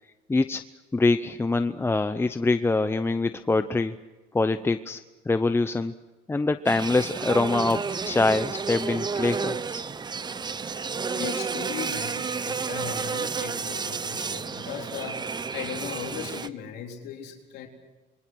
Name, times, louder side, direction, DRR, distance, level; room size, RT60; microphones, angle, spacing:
voice 1, 0.3-0.6 0.9-3.9 4.3-5.0 5.3-5.9 6.3-9.8, left 3 dB, 15° left, 10 dB, 0.7 m, -24 dB
sound 1, 6.7-16.5, right 5 dB, 25° right, 0.8 m, -31 dB
voice 2, 10.9-17.7, left 7 dB, 75° left, 1 dB, 3.9 m, -37 dB
27.5 x 23.0 x 6.2 m, 1.2 s
cardioid pair, 110°, 17 cm